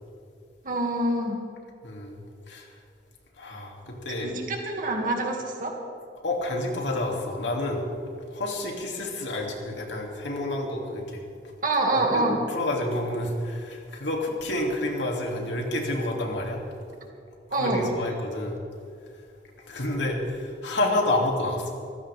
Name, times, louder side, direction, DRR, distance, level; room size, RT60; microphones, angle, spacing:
voice 1, 0.6-1.4 4.2-5.7 11.6-12.4 17.0-17.1 17.5-17.9, right 2 dB, 45° right, 0 dB, 2.5 m, -26 dB
voice 2, 1.8-2.2 2.5-2.7 3.4-4.3 6.2-7.8 8.3-11.2 12.1-16.6 17.6-18.6 19.7-21.7, left 1 dB, 90° left, 0 dB, 3.0 m, -29 dB
24.5 x 15.5 x 3.7 m, 2.4 s
head